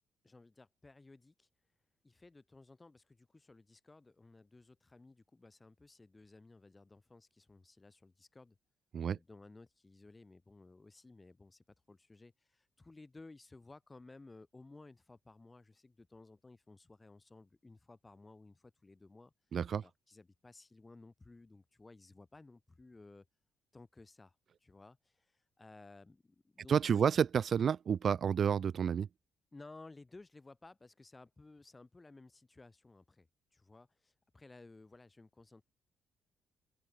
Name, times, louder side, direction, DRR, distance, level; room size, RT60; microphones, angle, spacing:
voice 1, 0.2-1.5 2.0-8.6 9.1-19.3 19.8-23.3 23.7-24.4 24.6-27.1 29.5-35.6, left 3 dB, 20° left, 5.8 m, -57 dB
voice 2, 19.5-19.8 26.7-29.1, right 7 dB, 55° right, 0.4 m, -30 dB
open air
cardioid pair, 90°, 0 cm